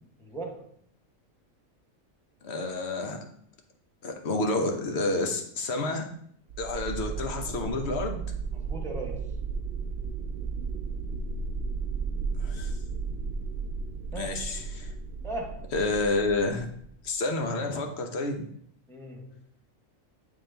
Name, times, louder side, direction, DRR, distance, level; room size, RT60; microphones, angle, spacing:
voice 1, 0.2-0.7 8.7-9.3 14.1-14.5 15.2-15.7 18.9-19.3, right 2 dB, 5° left, 0 dB, 0.6 m, -37 dB
voice 2, 2.4-3.2 4.0-6.1 6.6-8.2 12.4-12.7 14.1-14.9 15.7-16.7 17.0-18.4, left 2 dB, 55° left, 4 dB, 1.0 m, -29 dB
sound 1, 6.5-17.1, right 5 dB, 65° right, 0.7 m, -34 dB
8.8 x 3.7 x 3.3 m, 0.64 s
omnidirectional pair, 1.4 m